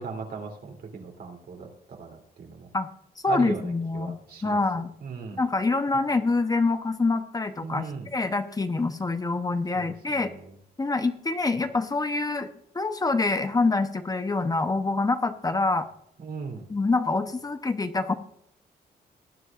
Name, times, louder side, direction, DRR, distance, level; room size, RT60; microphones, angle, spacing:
voice 1, 0.0-2.7 3.3-4.6 5.0-5.4 7.6-8.1 9.7-10.4 16.2-16.6, right 5 dB, 65° right, 1 dB, 3.0 m, -38 dB
voice 2, 3.2-4.1 4.4-4.9 5.4-10.3 10.8-12.5 12.7-15.9 16.7-18.1, left 3 dB, 20° left, 8 dB, 0.8 m, -26 dB
19.5 x 9.9 x 2.4 m, 0.73 s
cardioid pair, 105°, 17 cm